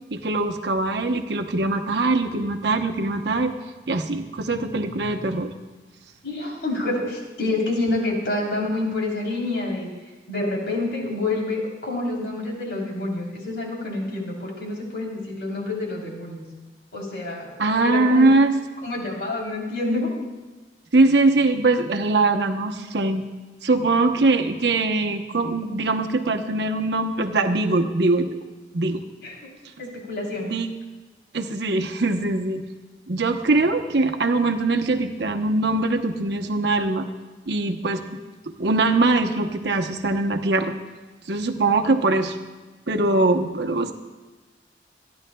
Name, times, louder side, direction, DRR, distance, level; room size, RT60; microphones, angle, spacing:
voice 1, 0.1-3.5 3.9-5.5 17.6-18.5 20.9-23.2 23.6-28.4 28.7-29.0 30.4-30.7 31.3-32.6 33.1-37.1 37.5-38.0 38.6-40.7 41.3-42.4 42.9-43.9, right 2 dB, 75° right, 5 dB, 0.9 m, -22 dB
voice 2, 6.2-9.9 10.3-16.4 16.9-18.2 18.8-20.1 29.2-29.4 29.8-30.5, left 2 dB, 70° left, -2 dB, 3.4 m, -28 dB
27.0 x 10.5 x 2.3 m, 1.3 s
head